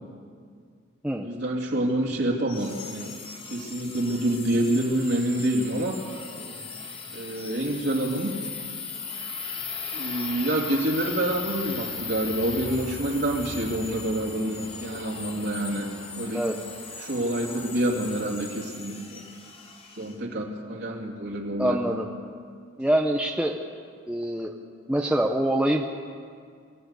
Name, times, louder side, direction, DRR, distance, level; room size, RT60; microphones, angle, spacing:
voice 1, 1.2-3.1 3.4-6.0 7.1-8.3 9.9-16.5 17.0-19.2 20.0-21.8, right 1 dB, 60° right, -1 dB, 2.7 m, -27 dB
sound 1, 2.5-20.1, left 5 dB, 30° left, 2.3 m, -38 dB
Train, 9.3-17.7, right 1 dB, 90° right, 1.6 m, -46 dB
voice 2, 21.6-22.1 22.8-23.5 24.1-24.5 24.9-25.9, right 1 dB, 5° right, 1 dB, 0.9 m, -24 dB
24.0 x 15.5 x 8.2 m, 2.2 s
head